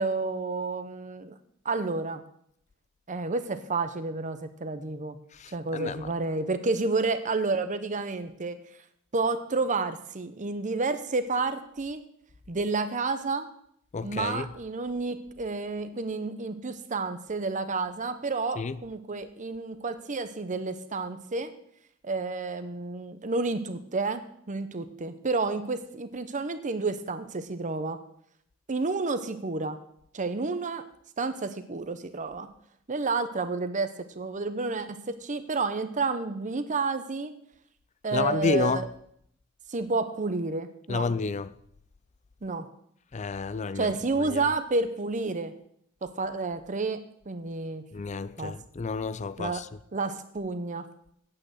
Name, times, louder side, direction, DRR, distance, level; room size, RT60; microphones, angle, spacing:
voice 1, 0.0-1.3 1.6-2.2 3.1-5.2 5.5-8.6 9.1-12.0 12.5-13.5 14.0-21.5 22.0-28.0 28.7-29.8 30.1-30.8 31.2-32.5 32.9-33.9 34.2-37.3 38.0-38.9 39.7-41.1 42.4-42.7 43.7-45.5 46.0-47.8 48.4-48.5 49.4-49.6 49.9-50.9, right 3 dB, 35° right, 0.8 m, -30 dB
voice 2, 5.3-6.1 13.9-14.5 18.6-18.8 38.1-38.8 40.9-41.5 43.1-43.9 44.3-44.4 47.9-49.7, left 4 dB, 35° left, 0.5 m, -30 dB
8.7 x 8.7 x 7.8 m
head